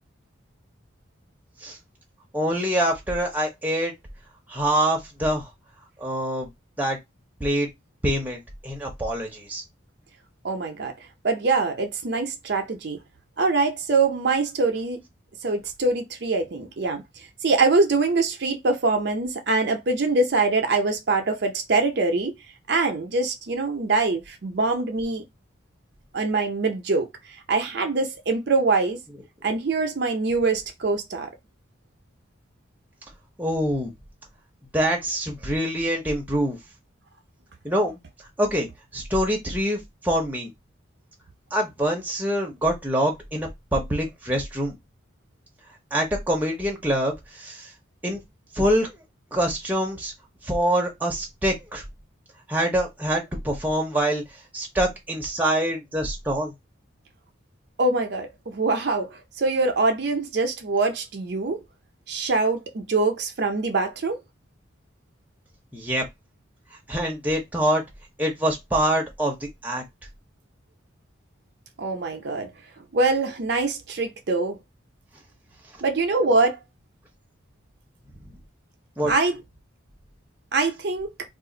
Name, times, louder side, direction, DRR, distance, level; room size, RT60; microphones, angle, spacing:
voice 1, 2.3-3.9 4.5-5.5 6.0-6.5 6.8-7.0 7.4-7.7 8.0-9.6 33.4-33.9 34.7-36.6 37.6-38.0 38.4-40.5 41.5-44.8 45.9-47.7 48.0-48.2 48.5-49.0 49.3-50.1 50.4-51.8 52.5-54.2 54.5-56.5 65.7-66.1 66.9-67.8 68.2-69.8 79.0-79.1, equal, 10° right, 0.7 m, -25 dB
voice 2, 10.4-10.9 11.2-13.0 13.4-15.0 15.4-17.0 17.4-22.3 22.7-25.2 26.1-27.1 27.5-29.0 29.4-31.3 57.8-61.6 62.1-64.2 71.8-72.5 72.9-74.6 75.8-76.6 79.1-79.3 80.5-81.1, right 3 dB, 55° right, 0.5 m, -23 dB
2.4 x 2.4 x 3.7 m
head